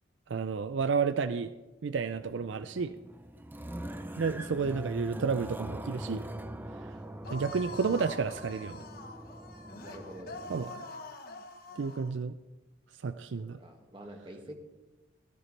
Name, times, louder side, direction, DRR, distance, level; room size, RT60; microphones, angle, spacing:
voice 1, 0.3-1.5 1.8-3.0 4.2-6.2 7.3-8.8 10.5-10.8 11.8-12.4 13.0-13.6, right 5 dB, 70° right, 12 dB, 0.4 m, -31 dB
sound 1, 2.1-10.7, right 1 dB, 10° right, 0.5 m, -42 dB
sound 2, 7.2-12.1, left 3 dB, 50° left, 1.1 m, -45 dB
voice 2, 9.8-10.4 13.4-14.6, equal, 25° right, 2 dB, 1.8 m, -46 dB
16.5 x 13.5 x 3.3 m, 1.1 s
head